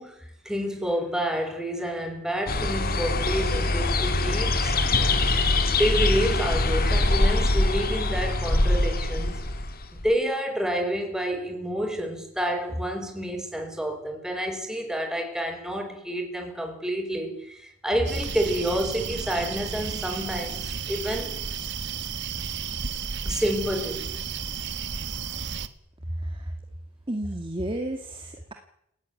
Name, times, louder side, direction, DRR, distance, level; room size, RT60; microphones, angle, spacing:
voice 1, 0.0-4.7 5.8-9.4 9.9-21.3 23.2-24.1, equal, 5° right, 5.6 m, -29 dB
sound 1, 2.5-10.1, left 2 dB, 45° left, 2.8 m, -23 dB
sound 2, 18.1-25.7, right 6 dB, 55° right, 1.5 m, -33 dB
voice 2, 26.1-26.5 27.1-28.5, right 1 dB, 25° right, 2.1 m, -32 dB
29.5 x 17.5 x 9.8 m
head